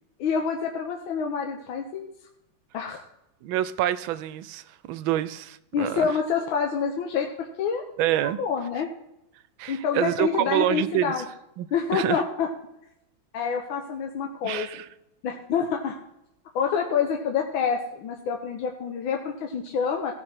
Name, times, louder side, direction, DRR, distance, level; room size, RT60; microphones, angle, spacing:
voice 1, 0.2-2.1 2.7-3.0 5.7-7.8 8.4-8.9 9.7-11.2 11.7-12.5 13.3-14.8 15.2-16.0 16.5-20.1, left 6 dB, 85° left, 2 dB, 1.7 m, -27 dB
voice 2, 3.4-6.2 8.0-8.4 9.6-11.2 11.6-12.2 14.4-14.9, right 12 dB, 80° right, 15 dB, 1.3 m, -27 dB
16.0 x 6.4 x 4.3 m, 0.84 s
omnidirectional pair, 2.2 m